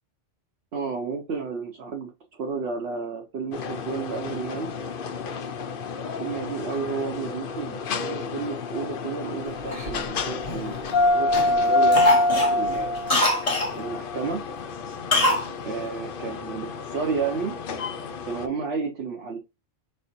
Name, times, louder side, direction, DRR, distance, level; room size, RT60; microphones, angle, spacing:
voice 1, 0.7-4.7 6.2-12.9 13.7-14.4 15.6-17.5 18.3-19.4, right 5 dB, 60° right, 0.9 m, -32 dB
sound 1, 3.5-18.4, left 2 dB, 55° left, 0.7 m, -28 dB
Cough, 9.7-11.0 11.3-11.6 11.9-13.7 15.1-15.5 15.7-15.8, left 2 dB, 30° left, 1.1 m, -23 dB
4.7 x 3.3 x 2.7 m
omnidirectional pair, 1.3 m